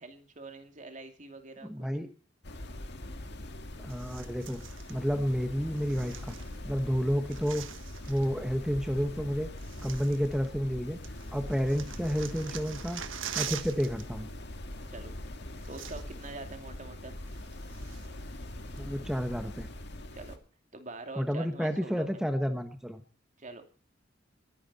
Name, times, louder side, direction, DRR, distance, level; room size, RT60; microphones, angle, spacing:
voice 1, 0.0-1.9 14.9-15.2 15.7-17.2 20.1-20.4 20.7-22.2 23.4-23.6, right 3 dB, 40° right, 6 dB, 2.6 m, -45 dB
voice 2, 1.6-2.1 3.8-4.6 4.9-6.3 6.6-7.6 8.1-9.5 9.8-11.0 11.3-13.0 13.3-14.3 18.8-19.7 21.2-23.0, equal, 5° right, 6 dB, 1.1 m, -30 dB
sound 1, 2.4-20.4, left 1 dB, 60° left, 1.9 m, -42 dB
sound 2, 3.9-5.0 5.7-6.8 7.1-8.3 9.1-9.2 9.6-10.8 11.0-14.1 14.3-14.5 15.3-15.4 15.6-16.3 16.7-16.8 17.3-18.2 18.8-18.9, right 9 dB, 75° right, 1.3 m, -43 dB
21.0 x 11.0 x 4.2 m, 0.40 s
head